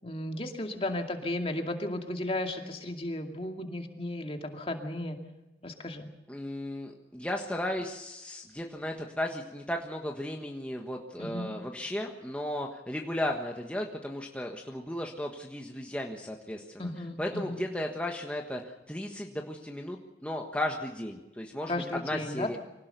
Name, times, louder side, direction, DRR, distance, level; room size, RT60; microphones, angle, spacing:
voice 1, 0.0-5.2 5.6-6.1 11.2-11.5 16.8-17.6 21.7-22.6, left 1 dB, 35° left, 4 dB, 2.4 m, -34 dB
voice 2, 6.3-16.9 17.2-22.6, left 1 dB, 5° left, 1 dB, 1.4 m, -35 dB
25.0 x 18.0 x 6.8 m, 1.0 s
head